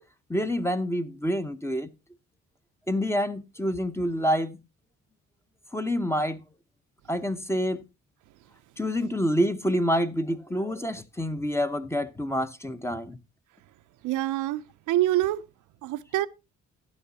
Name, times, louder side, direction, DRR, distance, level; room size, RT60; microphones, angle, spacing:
voice 1, 0.3-1.9 2.9-4.6 5.7-6.4 7.1-7.8 8.8-13.2, equal, 10° left, 0.8 m, -27 dB
voice 2, 14.0-15.4 15.8-16.3, right 14 dB, 85° right, 0.6 m, -26 dB
12.0 x 9.5 x 2.8 m
cardioid pair, 90°, 30 cm